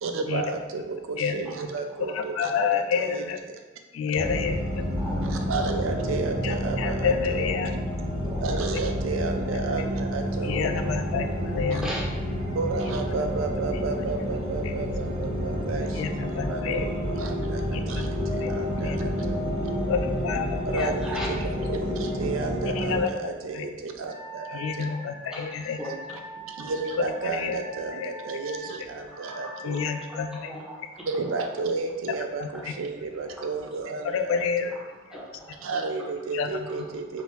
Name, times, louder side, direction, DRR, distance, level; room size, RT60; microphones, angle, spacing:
voice 1, 0.0-3.6 5.3-7.5 8.4-10.6 11.7-11.8 12.5-19.4 20.7-25.0 25.8-25.9 26.5-29.8 31.1-34.7 35.6-37.2, right 4 dB, 85° right, 4 dB, 0.4 m, -32 dB
voice 2, 2.1-3.4 3.9-4.8 6.4-7.7 10.4-11.9 14.6-14.7 15.9-16.9 17.7-18.1 18.4-19.3 19.9-20.9 22.7-23.2 23.5-23.7 24.5-25.8 27.2-27.6 28.0-28.1 29.6-30.6 32.4-32.7 34.0-34.8 36.3-36.7, left 6 dB, 85° left, 8 dB, 0.3 m, -29 dB
sound 1, 4.1-23.0, equal, 25° right, 0.9 m, -29 dB
voice 3, 5.0-5.5 7.0-7.1 7.8-7.9 8.2-8.4 10.5-10.6 10.8-11.0 11.4-12.1 18.0-18.2 18.5-18.9 20.8-21.3 22.7-22.9 24.9-26.2 29.1-29.8 30.1-30.2 30.4-30.8 32.5-32.6 33.3-33.4 34.1-34.2 35.1-35.7 36.7-36.8 37.1-37.2, equal, 5° right, -5 dB, 0.6 m, -39 dB
Wind instrument woodwind instrument, 24.1-30.4, right 1 dB, 60° right, 1.1 m, -42 dB
3.3 x 2.6 x 3.0 m, 1.2 s
head